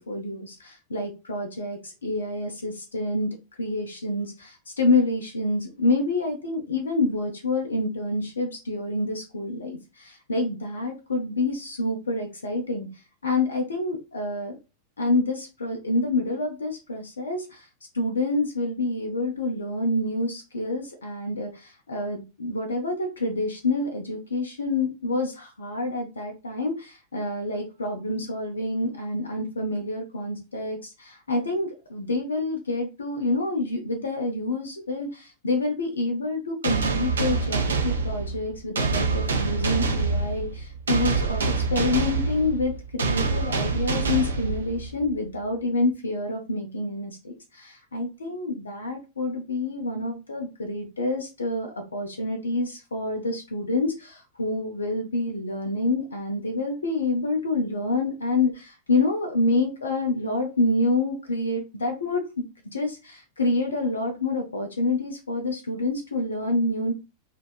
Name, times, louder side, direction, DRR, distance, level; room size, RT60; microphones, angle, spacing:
voice 1, 0.0-3.3 3.6-14.6 15.0-17.7 17.9-62.4 62.7-66.9, left 2 dB, 70° left, 4 dB, 0.4 m, -27 dB
sound 1, 36.6-45.1, right 4 dB, 70° right, 0.4 m, -26 dB
2.6 x 2.2 x 2.2 m, 0.29 s
figure-of-eight pair, 90°, 0 cm